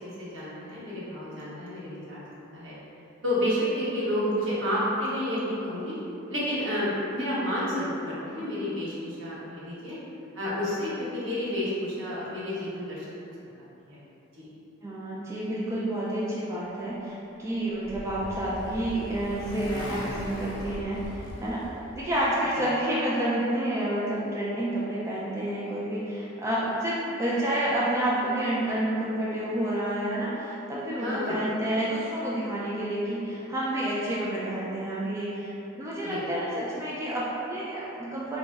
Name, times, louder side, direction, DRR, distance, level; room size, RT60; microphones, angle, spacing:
voice 1, 0.2-2.7 3.2-5.9 6.3-10.0 10.3-13.2 13.9-14.0 14.4-14.5 22.5-22.6 31.0-31.4 36.0-36.2, left 1 dB, 70° right, -9 dB, 1.1 m, -30 dB
voice 2, 14.8-21.6 21.9-38.4, right 1 dB, 15° right, -7 dB, 0.3 m, -29 dB
Motorcycle, 17.3-22.3, equal, 80° left, 0.7 m, -39 dB
3.9 x 2.1 x 3.4 m, 2.8 s
head